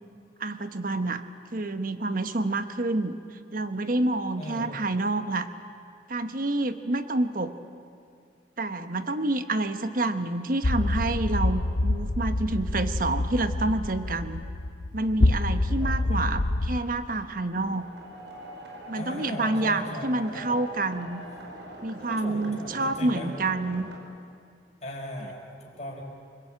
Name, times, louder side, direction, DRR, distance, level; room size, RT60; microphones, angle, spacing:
voice 1, 0.4-1.2 1.5-3.2 3.5-5.5 6.1-7.5 8.6-14.4 14.9-17.8 18.9-21.2 21.8-23.9, right 2 dB, 50° right, 10 dB, 1.2 m, -28 dB
voice 2, 4.4-4.8 15.8-16.4 19.0-20.5 22.1-23.3 24.8-26.0, equal, 40° left, -1 dB, 5.4 m, -38 dB
sound 1, 10.6-16.8, left 2 dB, 65° left, 0.8 m, -26 dB
sound 2, 17.6-24.0, right 1 dB, 85° right, 5.0 m, -43 dB
28.5 x 20.0 x 9.0 m, 2.3 s
head